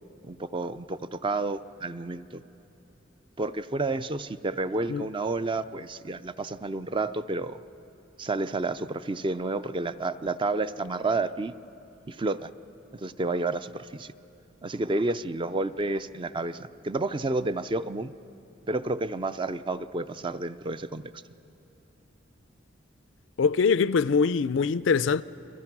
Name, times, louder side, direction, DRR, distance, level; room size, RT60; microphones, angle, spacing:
voice 1, 0.3-2.4 3.4-7.6 8.2-11.5 12.1-12.5 13.0-14.1 14.6-18.1 18.7-21.0, right 2 dB, 25° right, 0.4 m, -30 dB
voice 2, 23.4-25.2, left 5 dB, 65° left, 0.4 m, -23 dB
29.5 x 22.5 x 6.0 m
head